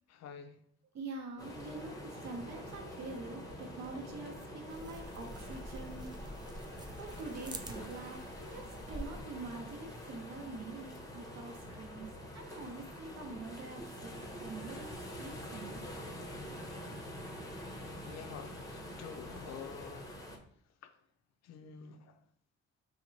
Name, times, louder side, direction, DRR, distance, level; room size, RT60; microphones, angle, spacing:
voice 1, 0.1-0.6 6.5-6.6 18.1-20.1 20.8-20.9 21.4-22.2, left 7 dB, 60° left, 0.5 m, -48 dB
voice 2, 0.9-6.3 7.0-12.1 12.3-14.9 15.1-15.8, right 3 dB, 60° right, 0.8 m, -45 dB
sound 1, 1.4-20.4, equal, 10° left, 0.7 m, -46 dB
sound 2, 4.7-9.2, right 1 dB, 15° right, 0.3 m, -47 dB
2.9 x 2.1 x 3.9 m
cardioid pair, 90°, 30 cm